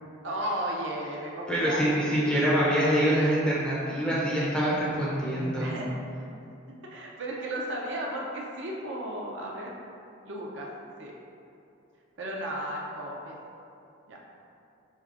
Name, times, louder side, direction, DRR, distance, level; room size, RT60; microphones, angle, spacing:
voice 1, 0.2-2.6 5.6-6.3 6.9-9.7 10.3-10.7 11.0-11.1 12.2-13.4 14.1-14.2, right 1 dB, 65° right, -2 dB, 0.5 m, -34 dB
voice 2, 1.5-5.7, equal, 5° left, -8 dB, 0.5 m, -25 dB
5.3 x 3.3 x 2.4 m, 2.7 s
head